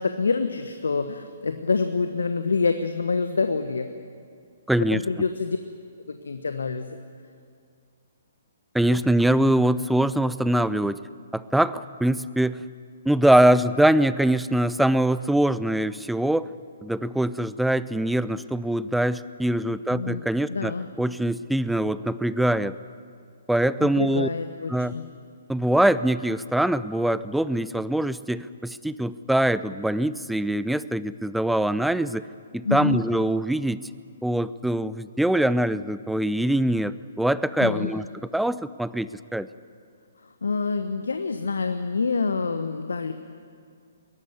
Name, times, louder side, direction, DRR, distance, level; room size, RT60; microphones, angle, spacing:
voice 1, 0.0-3.9 4.9-5.6 6.0-7.0 19.9-20.9 23.8-25.0 32.6-33.0 37.6-37.9 40.4-43.1, left 4 dB, 70° left, 8 dB, 1.2 m, -26 dB
voice 2, 4.7-5.0 8.7-11.0 11.3-12.6 13.1-16.5 16.8-22.8 23.5-24.3 24.7-24.9 25.5-32.3 32.5-33.8 34.2-39.5, right 1 dB, ahead, 16 dB, 0.5 m, -23 dB
22.0 x 18.5 x 9.7 m, 2.2 s
figure-of-eight pair, 125°, 0 cm